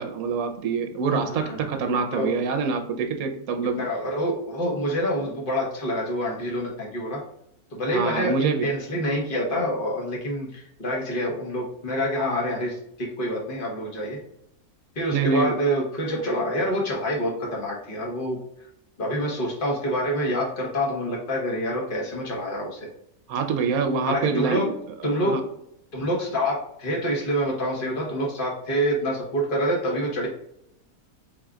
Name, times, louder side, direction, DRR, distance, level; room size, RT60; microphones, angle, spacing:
voice 1, 0.0-3.8 7.9-8.7 15.1-15.6 23.3-24.7 25.2-25.4, right 5 dB, 70° right, 5 dB, 1.1 m, -25 dB
voice 2, 1.1-1.7 2.1-2.3 3.8-7.2 7.7-14.2 14.9-18.4 19.0-22.9 24.1-24.7 25.0-25.3 25.9-30.3, equal, 35° left, -2 dB, 1.3 m, -27 dB
4.6 x 3.7 x 2.3 m, 0.77 s
omnidirectional pair, 1.7 m